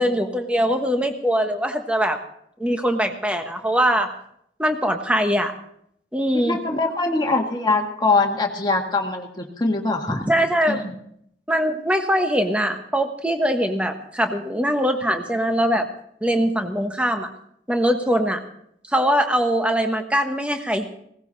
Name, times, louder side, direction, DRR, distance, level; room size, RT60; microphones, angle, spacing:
voice 1, 0.0-2.2 2.6-4.1 4.6-5.5 6.1-6.6 10.1-10.8 11.5-15.8 16.2-17.3 17.7-18.4 18.9-20.9, equal, 5° right, 5 dB, 1.2 m, -22 dB
voice 2, 6.4-10.3 10.7-10.9, left 3 dB, 25° left, 1 dB, 1.7 m, -23 dB
17.5 x 15.5 x 4.1 m, 0.71 s
head